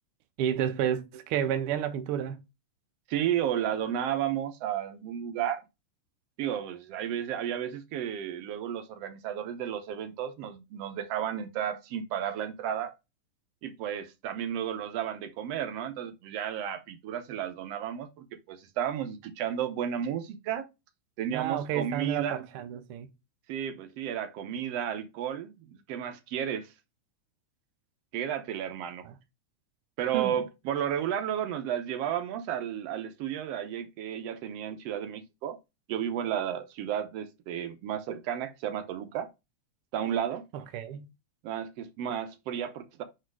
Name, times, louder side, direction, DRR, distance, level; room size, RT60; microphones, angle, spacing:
voice 1, 0.4-2.4 21.3-23.1 29.0-29.1 30.1-30.4 40.5-41.1, right 9 dB, 90° right, 1.2 m, -31 dB
voice 2, 3.1-5.6 6.4-12.9 13.6-20.7 21.2-22.5 23.5-26.7 28.1-29.1 30.0-35.6 35.9-39.3 39.9-40.5 41.4-43.0, right 9 dB, 70° right, 1.6 m, -33 dB
4.7 x 4.5 x 4.6 m
omnidirectional pair, 3.4 m